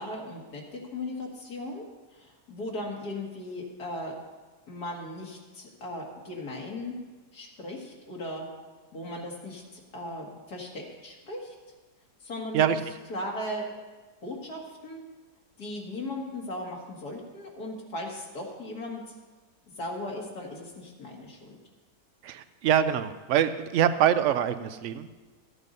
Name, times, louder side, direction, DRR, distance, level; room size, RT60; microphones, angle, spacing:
voice 1, 0.0-4.2 4.7-6.9 7.3-8.5 8.9-11.6 12.2-12.7 13.1-13.7 14.2-15.0 15.6-19.2 19.8-21.6, left 1 dB, 70° left, -1 dB, 2.3 m, -37 dB
voice 2, 22.2-25.1, right 9 dB, 70° right, 12 dB, 0.7 m, -24 dB
13.5 x 8.2 x 5.3 m, 1.3 s
omnidirectional pair, 1.8 m